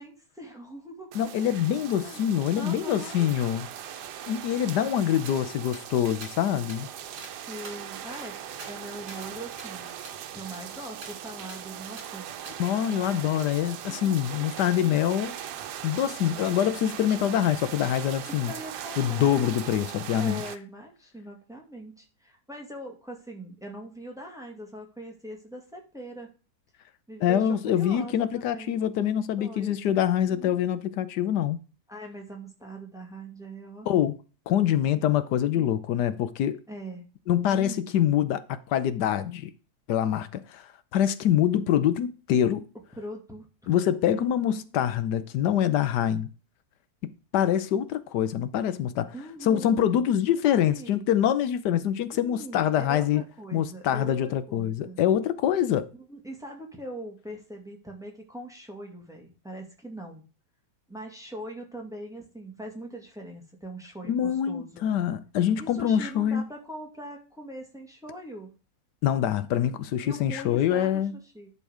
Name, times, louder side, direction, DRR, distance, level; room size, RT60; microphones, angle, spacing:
voice 1, 0.0-1.1 2.0-2.3 2.6-3.3 7.5-9.9 10.3-12.3 12.9-13.4 13.9-14.5 14.8-14.9 18.3-19.3 20.2-26.3 27.1-28.9 29.4-29.7 30.3-30.7 31.9-33.9 35.5-35.7 36.7-37.0 37.5-37.9 43.0-44.7 49.1-49.9 50.4-51.0 52.1-55.0 55.9-60.2 60.9-64.9 65.6-68.5 70.0-71.0 71.3-71.5, right 1 dB, ahead, 2.1 m, -41 dB
voice 2, 1.1-3.7 4.3-6.9 12.6-15.3 15.8-18.5 19.0-20.4 27.2-31.6 33.9-34.2 34.5-36.6 37.3-39.5 39.9-42.7 43.7-46.3 47.0-49.1 49.4-53.2 53.5-55.9 64.1-66.4 69.0-71.1, left 10 dB, 85° left, 1.3 m, -25 dB
sound 1, 1.1-20.6, right 9 dB, 90° right, 1.4 m, -40 dB
sound 2, 5.3-5.4 5.7-5.8 6.2-6.3 6.7-6.8 7.2-7.3 7.6-9.3 9.6-9.7 10.0-10.2 10.5-10.6 11.0-11.1 11.5-11.6 12.0-12.1 12.4-12.6, right 2 dB, 60° right, 3.0 m, -46 dB
11.0 x 4.6 x 4.9 m
omnidirectional pair, 1.8 m